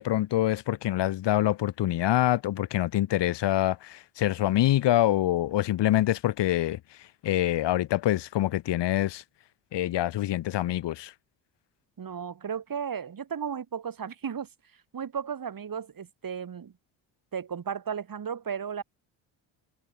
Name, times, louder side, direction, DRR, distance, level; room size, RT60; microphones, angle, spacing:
voice 1, 0.0-6.8 7.2-9.2 9.7-11.1, left 14 dB, 60° left, 1.3 m, -25 dB
voice 2, 12.0-14.5 14.9-16.7 17.3-18.8, right 7 dB, 45° right, 5.7 m, -34 dB
supercardioid pair, 75°, 48 cm